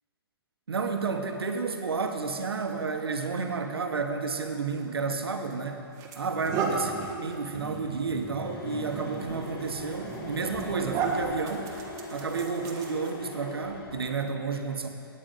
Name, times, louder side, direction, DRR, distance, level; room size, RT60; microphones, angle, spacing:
voice 1, 0.7-5.8 6.2-11.7 12.1-14.9, right 4 dB, 85° right, 5 dB, 1.2 m, -31 dB
sound 1, 5.2-5.3 5.9-13.3, right 4 dB, 25° right, 1.4 m, -35 dB
sound 2, 8.4-14.3, left 3 dB, 70° left, 1.8 m, -42 dB
9.1 x 8.7 x 7.6 m, 2.5 s
hypercardioid pair, 130°, 13 cm